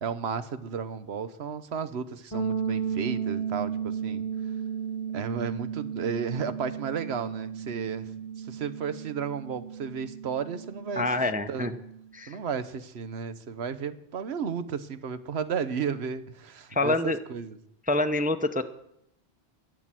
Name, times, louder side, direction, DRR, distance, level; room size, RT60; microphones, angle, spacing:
voice 1, 0.0-4.2 5.1-8.1 8.4-11.1 11.5-11.7 12.3-17.6, right 6 dB, 75° right, 12 dB, 1.1 m, -33 dB
sound 1, 2.3-12.0, right 7 dB, 30° left, 1.2 m, -34 dB
voice 2, 11.0-11.8 12.1-12.4 16.7-17.2 17.9-18.6, left 2 dB, 10° right, 8 dB, 0.5 m, -26 dB
12.5 x 9.7 x 7.5 m, 0.78 s
omnidirectional pair, 1.1 m